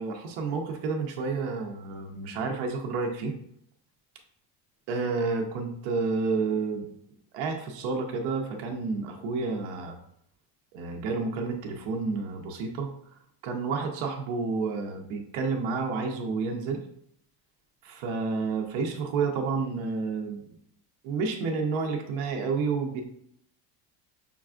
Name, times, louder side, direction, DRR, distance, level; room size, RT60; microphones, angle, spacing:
voice 1, 0.0-3.4 4.9-6.9 7.3-10.0 10.7-12.9 13.4-16.8 17.8-20.4 21.0-23.0, right 4 dB, 70° right, 3 dB, 0.7 m, -30 dB
5.3 x 2.4 x 2.4 m, 0.70 s
supercardioid pair, 90°, 50 cm